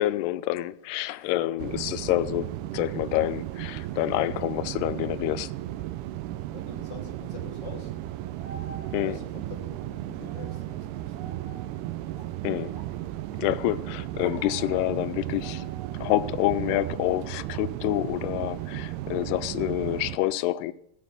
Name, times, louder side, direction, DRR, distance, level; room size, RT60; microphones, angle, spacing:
voice 1, 0.0-5.5 8.9-9.2 12.4-12.7 13.4-15.7 16.0-20.7, left 15 dB, 90° left, 2.6 m, -27 dB
sound 1, 1.6-20.2, right 14 dB, 85° right, 2.7 m, -35 dB
voice 2, 6.5-7.9 9.0-11.4 14.3-14.4, left 5 dB, 45° left, 2.2 m, -45 dB
sound 2, 8.2-9.4 9.7-13.0 13.4-16.4 16.7-17.1 17.4-17.7, right 2 dB, 50° right, 1.1 m, -49 dB
15.5 x 7.7 x 6.7 m
omnidirectional pair, 4.6 m